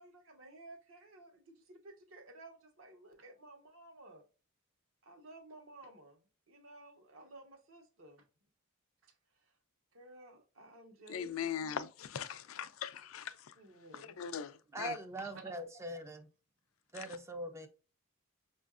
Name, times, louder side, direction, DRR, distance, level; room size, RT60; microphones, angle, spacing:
voice 1, 0.0-4.2 5.0-8.3 9.0-9.6 9.9-11.4 13.5-14.2 15.2-15.5, right 2 dB, 70° right, 0.9 m, -55 dB
voice 2, 11.1-13.3 14.2-15.0 16.9-17.0, left 8 dB, 75° left, 0.4 m, -40 dB
voice 3, 14.7-16.3 16.9-17.7, right 1 dB, 15° right, 0.3 m, -42 dB
5.4 x 2.5 x 2.3 m
head